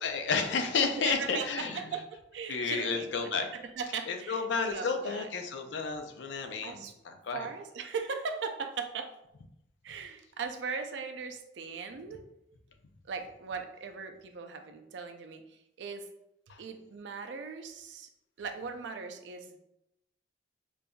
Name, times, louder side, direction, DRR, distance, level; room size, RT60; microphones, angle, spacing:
voice 1, 0.0-1.9 2.5-3.5 4.1-7.5 16.5-16.6, left 5 dB, 75° left, 5 dB, 0.5 m, -31 dB
voice 2, 1.0-5.3 6.6-6.9 7.3-9.1 9.8-12.2 13.1-16.1 16.6-18.1 18.4-19.6, right 5 dB, 70° right, 6 dB, 0.4 m, -39 dB
5.1 x 2.6 x 2.3 m, 0.85 s
head